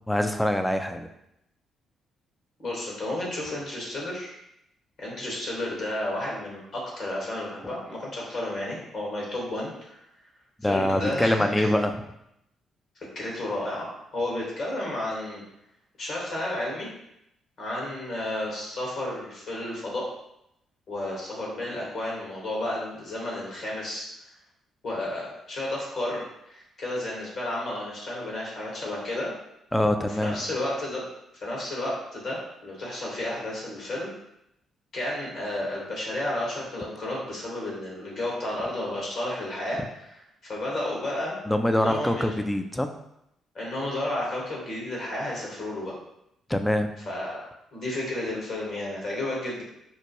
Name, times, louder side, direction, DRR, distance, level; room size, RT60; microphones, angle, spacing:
voice 1, 0.1-1.1 10.6-12.0 29.7-30.4 41.5-42.9 46.5-46.9, left 1 dB, 10° left, 6 dB, 0.4 m, -24 dB
voice 2, 2.6-4.3 5.0-10.0 10.6-11.7 13.1-15.4 16.0-16.9 17.6-20.1 20.9-24.1 24.8-29.3 30.1-31.1 31.4-34.1 34.9-41.4 41.7-42.3 43.5-45.9 47.1-47.5 47.7-49.6, left 1 dB, 55° left, -3 dB, 1.4 m, -32 dB
4.4 x 2.2 x 2.9 m, 0.81 s
hypercardioid pair, 45°, 0 cm